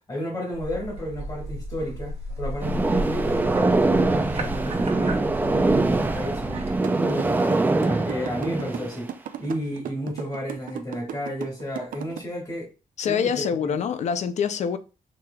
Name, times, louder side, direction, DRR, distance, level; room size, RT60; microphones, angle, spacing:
voice 1, 0.0-9.1 9.4-12.7 13.0-13.8, equal, 25° left, 1.8 m, -32 dB
sound 1, 0.5-6.8, right 1 dB, 50° right, 0.8 m, -34 dB
sound 2, 2.6-9.0, right 2 dB, 15° right, 0.4 m, -23 dB
sound 3, 6.8-12.2, right 10 dB, 85° right, 0.5 m, -35 dB
voice 2, 13.0-14.8, left 7 dB, 60° left, 0.5 m, -25 dB
6.0 x 3.3 x 2.3 m
wide cardioid pair, 155°, 14 cm